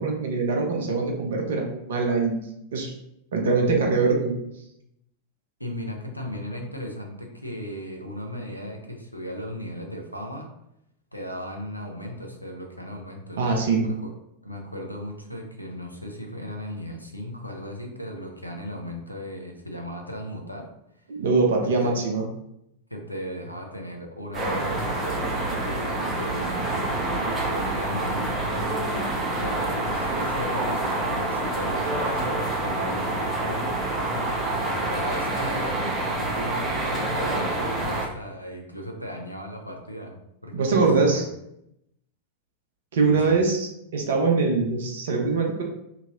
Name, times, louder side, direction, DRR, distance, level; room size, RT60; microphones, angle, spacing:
voice 1, 0.0-2.4 2.7-2.9 3.3-4.3 13.4-13.8 21.1-22.2 40.5-41.2 42.9-45.6, right 4 dB, 60° right, 1 dB, 0.6 m, -23 dB
voice 2, 5.6-10.5 11.1-13.4 14.0-14.1 14.4-20.7 21.0-21.1 21.6-22.0 22.9-26.9 27.5-33.7 34.9-41.2 43.1-43.4, equal, 90° left, 1 dB, 0.5 m, -36 dB
sound 1, 24.3-38.1, right 2 dB, 20° right, 0.7 m, -27 dB
2.9 x 2.7 x 2.5 m, 0.79 s
figure-of-eight pair, 90°, 0 cm